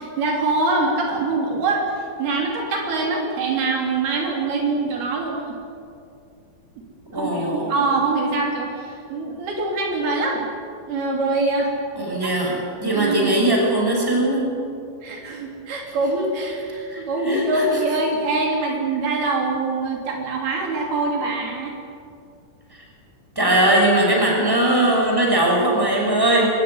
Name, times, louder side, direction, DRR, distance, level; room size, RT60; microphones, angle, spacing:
voice 1, 0.0-5.6 7.1-10.5 10.9-12.3 12.9-13.4 15.0-21.8, right 3 dB, 70° right, 0 dB, 4.9 m, -24 dB
voice 2, 7.1-7.7 12.0-14.5 16.9-17.6 22.7-22.8 23.3-26.5, right 1 dB, 5° right, -1 dB, 6.3 m, -20 dB
22.5 x 19.5 x 9.8 m, 2.5 s
omnidirectional pair, 4.6 m